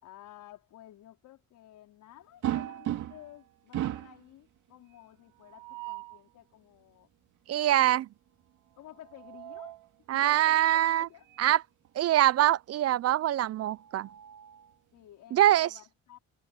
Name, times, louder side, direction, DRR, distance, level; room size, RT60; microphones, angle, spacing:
voice 1, 0.0-7.1 7.6-8.0 8.8-9.8 10.1-10.6 11.0-11.6 14.9-16.2, left 13 dB, 85° left, 4.4 m, -53 dB
sound 1, 2.4-3.4 3.7-4.2 5.4-6.2 8.8-9.9 11.3-11.5 11.8-11.9 13.5-14.7, right 12 dB, 80° right, 2.2 m, -37 dB
voice 2, 7.5-8.1 10.1-11.1 11.4-11.6 12.0-14.1 15.3-15.7, right 13 dB, 55° right, 0.5 m, -24 dB
cardioid pair, 90°, 30 cm